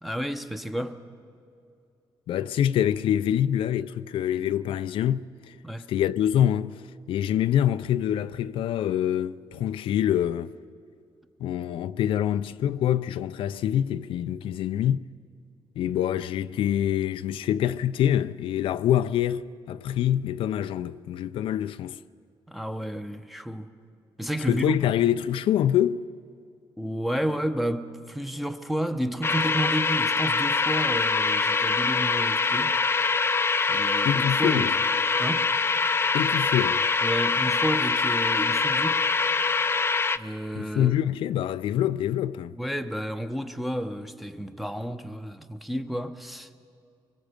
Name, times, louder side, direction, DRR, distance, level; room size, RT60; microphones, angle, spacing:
voice 1, 0.0-1.0 5.6-5.9 22.5-23.7 24.2-24.9 26.8-32.8 33.7-34.7 35.2-35.5 37.0-39.0 40.1-41.0 42.5-46.6, equal, ahead, 0.9 m, -31 dB
voice 2, 2.3-5.5 5.9-6.7 7.1-10.5 11.4-15.0 15.8-22.0 24.5-26.0 34.1-34.7 36.1-36.8 40.6-42.5, left 11 dB, 80° left, 0.4 m, -25 dB
sound 1, 29.2-40.2, left 4 dB, 25° left, 0.5 m, -24 dB
24.0 x 22.0 x 5.2 m
cardioid pair, 120°, 9 cm